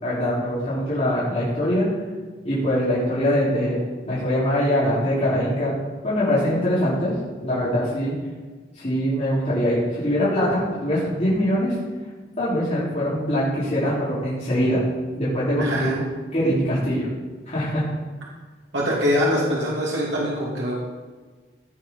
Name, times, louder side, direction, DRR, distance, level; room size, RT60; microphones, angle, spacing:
voice 1, 0.0-1.9 2.4-3.8 4.1-5.7 6.0-7.2 7.4-8.1 8.8-11.7 12.4-14.8 15.1-17.1 17.5-17.8, equal, 40° left, -9 dB, 3.4 m, -23 dB
voice 2, 15.6-16.0 18.7-20.7, equal, 85° right, -5 dB, 2.4 m, -23 dB
16.0 x 5.7 x 5.4 m, 1.4 s
head